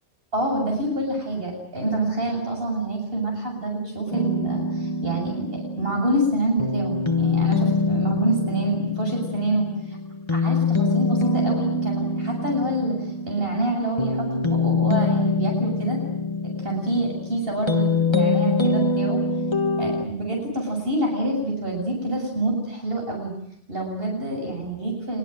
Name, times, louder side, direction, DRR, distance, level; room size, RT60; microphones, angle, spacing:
voice 1, 0.3-10.0 10.3-16.0 16.6-19.2 19.8-23.3 23.7-25.2, right 1 dB, 55° right, 1 dB, 8.2 m, -27 dB
sound 1, 4.1-20.1, left 3 dB, 25° left, 1.6 m, -24 dB
26.5 x 23.0 x 9.2 m, 0.75 s
omnidirectional pair, 1.2 m